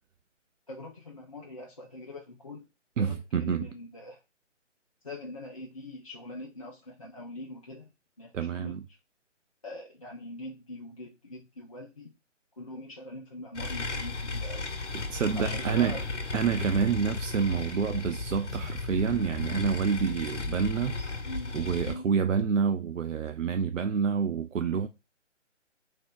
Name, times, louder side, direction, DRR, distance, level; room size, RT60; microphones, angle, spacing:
voice 1, 0.7-2.7 3.0-4.2 5.0-7.9 8.2-8.8 9.6-12.1 12.6-14.7 15.3-16.0 21.2-21.6 21.8-22.1, left 1 dB, 30° left, 0.5 m, -42 dB
voice 2, 3.0-3.7 8.3-8.8 14.9-16.0 16.3-21.0 21.5-24.9, right 6 dB, 80° right, 0.5 m, -28 dB
sound 1, 13.5-21.9, left 3 dB, 70° left, 1.0 m, -35 dB
3.3 x 2.7 x 3.7 m
figure-of-eight pair, 150°, 37 cm